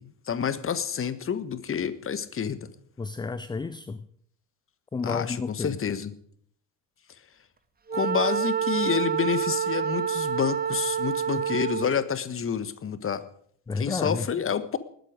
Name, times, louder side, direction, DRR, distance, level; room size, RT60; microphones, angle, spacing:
voice 1, 0.0-2.7 5.0-6.1 7.9-13.2 13.8-14.8, left 7 dB, 25° left, 14 dB, 1.5 m, -28 dB
voice 2, 3.0-4.0 4.9-5.8 13.7-14.3, left 4 dB, 10° left, 15 dB, 0.6 m, -31 dB
Wind instrument woodwind instrument, 7.9-12.1, right 8 dB, 20° right, 1.4 m, -28 dB
19.5 x 13.5 x 5.1 m, 0.62 s
figure-of-eight pair, 65°, 50 cm